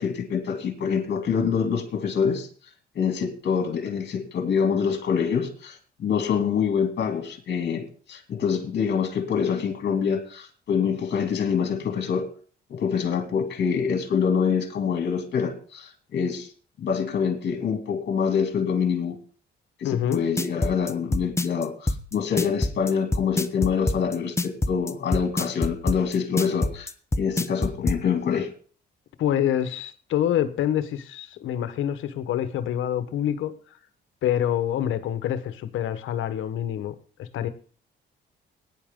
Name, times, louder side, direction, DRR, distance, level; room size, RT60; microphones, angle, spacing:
voice 1, 0.0-2.5 2.9-12.3 12.7-16.5 16.8-19.2 19.8-28.5, left 6 dB, 60° left, 2.8 m, -25 dB
voice 2, 19.8-20.2 29.2-33.5 34.2-37.5, left 10 dB, 80° left, 1.3 m, -26 dB
sound 1, 20.1-28.0, left 2 dB, 15° left, 0.9 m, -25 dB
17.0 x 10.0 x 3.8 m
cardioid pair, 90°, 20 cm